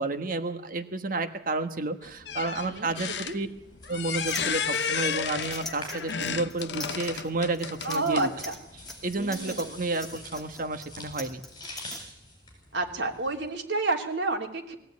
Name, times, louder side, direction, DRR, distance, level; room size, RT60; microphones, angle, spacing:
voice 1, 0.0-3.5 3.9-8.3 9.0-11.4, right 2 dB, 50° right, 8 dB, 1.4 m, -31 dB
sound 1, 2.0-8.4 9.2-9.3, left 6 dB, 70° left, 1.0 m, -32 dB
sound 2, 2.7-13.5, left 1 dB, 25° left, 8.0 m, -47 dB
sound 3, 4.3-12.0, left 1 dB, ahead, 2.6 m, -42 dB
voice 2, 7.8-8.5 9.2-9.8 12.7-14.7, right 2 dB, 80° right, 2 dB, 3.2 m, -30 dB
21.0 x 16.0 x 9.5 m, 0.79 s
head